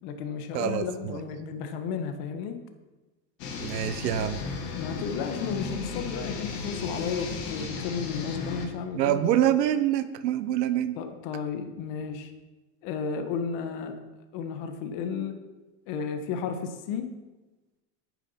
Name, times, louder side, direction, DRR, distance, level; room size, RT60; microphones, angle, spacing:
voice 1, 0.0-2.6 4.8-9.3 10.9-12.3 12.8-14.0 14.3-15.4 15.9-17.1, left 6 dB, 60° left, 7 dB, 1.6 m, -33 dB
voice 2, 0.5-1.2 3.6-4.4 8.9-11.0, right 11 dB, 90° right, 11 dB, 1.0 m, -26 dB
sound 1, 3.4-8.7, left 4 dB, 90° left, 2.1 m, -35 dB
9.8 x 9.0 x 5.8 m, 1.1 s
supercardioid pair, 115°, 48 cm